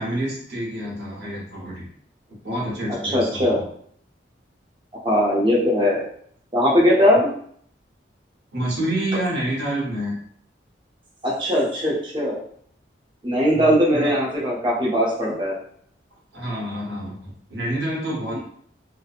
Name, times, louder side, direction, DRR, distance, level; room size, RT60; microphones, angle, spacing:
voice 1, 0.0-1.8 2.3-3.6 8.5-10.1 13.5-14.1 16.3-18.4, right 1 dB, 65° right, -4 dB, 0.9 m, -28 dB
voice 2, 3.0-3.6 5.0-6.0 6.5-7.3 11.2-12.4 13.2-15.6, equal, 25° right, -4 dB, 0.6 m, -20 dB
2.7 x 2.0 x 2.4 m, 0.62 s
head